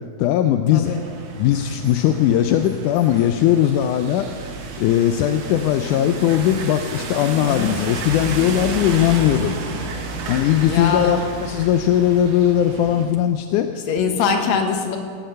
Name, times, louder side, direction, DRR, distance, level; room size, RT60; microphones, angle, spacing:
voice 1, 0.2-0.9 1.4-4.3 4.8-9.6 10.3-13.7, left 11 dB, 85° left, 7 dB, 2.1 m, -19 dB
sound 1, 0.8-13.1, right 3 dB, 60° right, 2.2 m, -31 dB
voice 2, 10.7-11.2 13.9-15.0, left 6 dB, 70° left, 4 dB, 2.4 m, -22 dB
17.0 x 8.0 x 7.6 m, 2.2 s
omnidirectional pair, 3.6 m